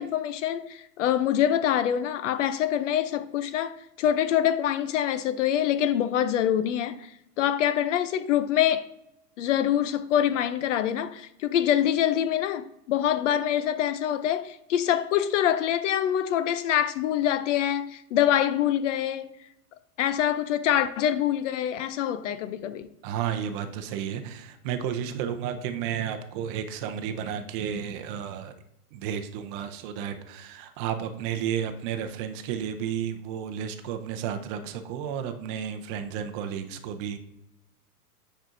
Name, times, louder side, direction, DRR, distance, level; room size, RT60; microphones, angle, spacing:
voice 1, 0.0-7.1 7.4-8.9 9.4-19.3 20.0-22.9, left 10 dB, 55° left, 0.5 m, -25 dB
voice 2, 23.0-28.5 28.9-37.2, right 8 dB, 35° right, 0.6 m, -32 dB
9.1 x 4.4 x 2.5 m
hypercardioid pair, 125°, 47 cm